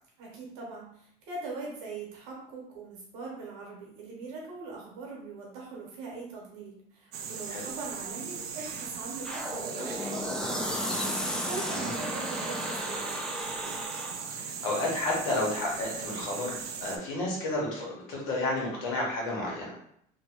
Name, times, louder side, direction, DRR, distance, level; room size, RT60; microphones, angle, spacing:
voice 1, 0.2-13.2, right 3 dB, 90° right, -2 dB, 1.1 m, -42 dB
sound 1, 7.1-17.0, right 6 dB, 60° right, 0.5 m, -38 dB
sound 2, 9.2-14.3, left 1 dB, 5° left, 0.4 m, -34 dB
voice 2, 14.3-16.6 16.8-19.7, left 2 dB, 85° left, -3 dB, 1.2 m, -31 dB
2.9 x 2.2 x 2.9 m, 0.69 s
supercardioid pair, 105°, 18 cm